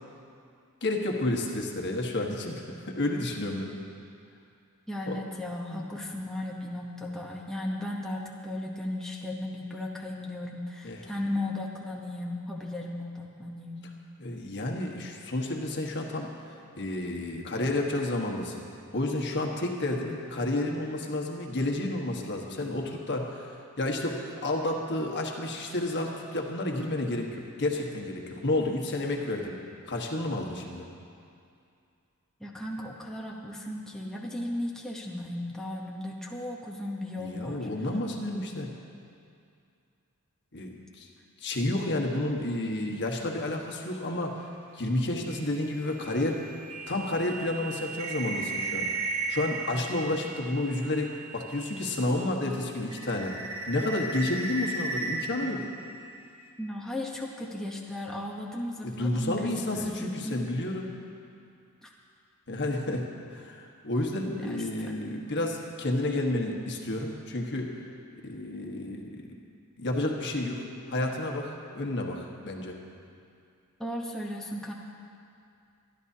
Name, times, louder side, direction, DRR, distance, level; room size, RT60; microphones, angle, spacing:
voice 1, 0.8-3.7 5.1-5.2 5.7-5.9 10.8-11.0 14.2-16.3 16.8-18.6 18.9-23.5 23.8-29.5 29.9-30.8 37.2-38.7 40.5-41.1 41.4-44.5 44.7-46.4 46.9-48.9 49.3-53.4 53.7-55.6 58.8-60.9 62.5-67.7 68.2-69.2 69.8-72.8, left 1 dB, 55° left, 1 dB, 1.4 m, -31 dB
voice 2, 4.9-13.9 32.4-37.7 56.6-60.3 61.8-61.9 64.3-65.0 73.8-74.7, left 1 dB, ahead, -3 dB, 0.9 m, -36 dB
sound 1, 45.3-52.1 52.5-56.5, right 3 dB, 30° right, 1.6 m, -36 dB
24.5 x 11.5 x 2.8 m, 2.5 s
head